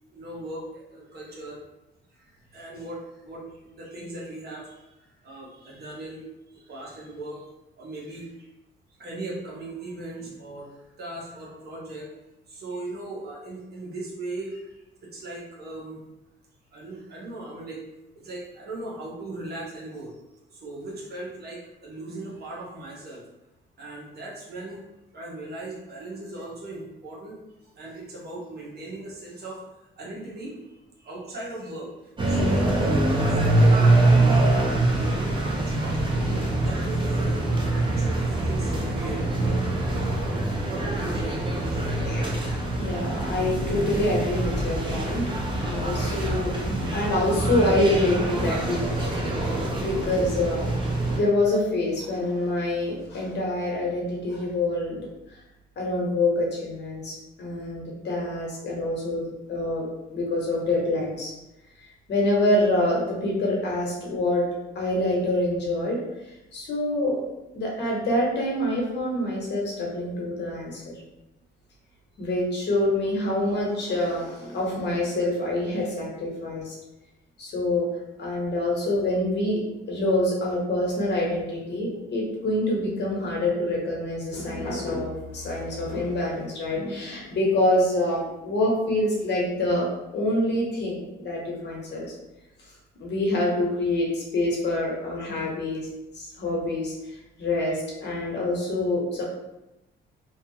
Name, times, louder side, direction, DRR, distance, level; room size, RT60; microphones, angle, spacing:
voice 1, 0.1-1.6 2.1-6.3 6.5-7.5 7.8-8.5 9.0-12.1 12.5-16.0 16.7-17.8 18.1-20.2 20.5-23.2 23.8-24.8 25.1-27.3 27.8-29.6 30.0-36.0 36.6-42.3, right 2 dB, 55° right, -4 dB, 0.9 m, -38 dB
sound 1, 32.2-51.2, right 2 dB, 25° right, 0.7 m, -24 dB
voice 2, 42.0-55.0 55.8-59.9 60.1-61.3 62.1-64.4 64.7-66.0 66.5-67.2 67.5-70.9 72.2-76.8 77.4-77.9 78.2-79.6 79.9-89.9 90.1-92.1 93.0-95.9 96.1-99.2, left 1 dB, 60° left, -3 dB, 1.0 m, -26 dB
2.6 x 2.3 x 2.7 m, 0.97 s
cardioid pair, 90°, 20 cm